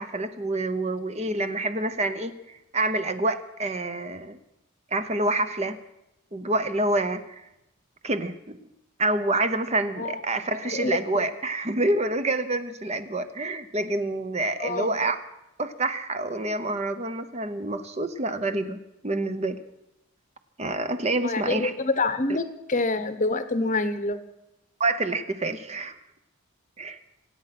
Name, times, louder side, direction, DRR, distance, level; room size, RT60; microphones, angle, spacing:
voice 1, 0.0-4.4 4.9-5.8 6.3-7.5 8.0-8.6 9.0-15.2 15.6-18.8 19.0-19.6 20.6-21.7 24.8-26.0 26.8-27.0, right 2 dB, 30° right, 10 dB, 0.8 m, -27 dB
voice 2, 14.6-14.9 21.2-24.2, left 2 dB, 35° left, 11 dB, 0.9 m, -26 dB
26.0 x 8.9 x 5.9 m, 0.87 s
head